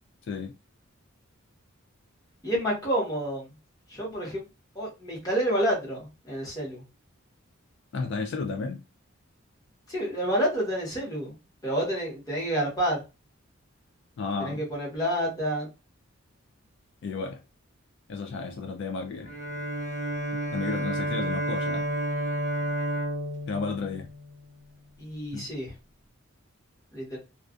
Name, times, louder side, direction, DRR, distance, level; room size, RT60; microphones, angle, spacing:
voice 1, 2.4-3.5 3.9-4.4 4.7-6.8 9.9-11.4 11.6-13.0 14.4-15.7 25.0-25.7 26.9-27.2, right 1 dB, 15° left, 1.1 m, -29 dB
voice 2, 7.9-8.8 14.2-14.6 17.0-17.4 18.1-19.4 20.5-21.9 23.5-24.1 25.3-25.5, left 4 dB, 55° left, 0.3 m, -32 dB
Bowed string instrument, 19.2-24.7, equal, 10° right, 0.8 m, -31 dB
2.3 x 2.3 x 2.4 m
head